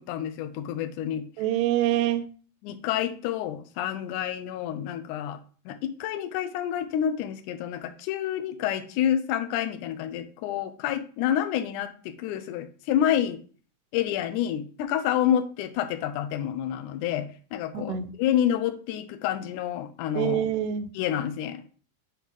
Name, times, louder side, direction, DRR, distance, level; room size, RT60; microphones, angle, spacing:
voice 1, 0.0-1.3 2.6-5.4 5.7-13.4 13.9-20.5 20.9-21.7, left 10 dB, 80° left, 2.1 m, -28 dB
voice 2, 1.4-2.3 17.7-18.1 20.2-20.9, right 11 dB, 85° right, 2.1 m, -25 dB
6.3 x 3.2 x 5.2 m
omnidirectional pair, 3.7 m